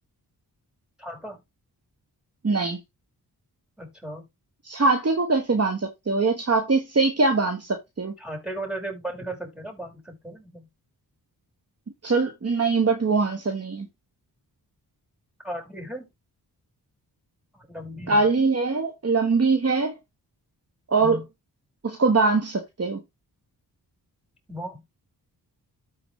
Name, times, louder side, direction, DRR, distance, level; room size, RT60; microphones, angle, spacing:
voice 1, 1.0-1.4 3.8-4.3 8.2-10.7 15.4-16.1 17.5-18.3 21.0-21.2 24.5-24.8, right 1 dB, ahead, 5.3 m, -36 dB
voice 2, 2.4-2.8 4.6-8.1 12.0-13.9 18.1-19.9 20.9-21.2 21.8-23.0, right 3 dB, 40° right, 1.4 m, -22 dB
13.0 x 4.5 x 3.3 m
cardioid pair, 50°, 40 cm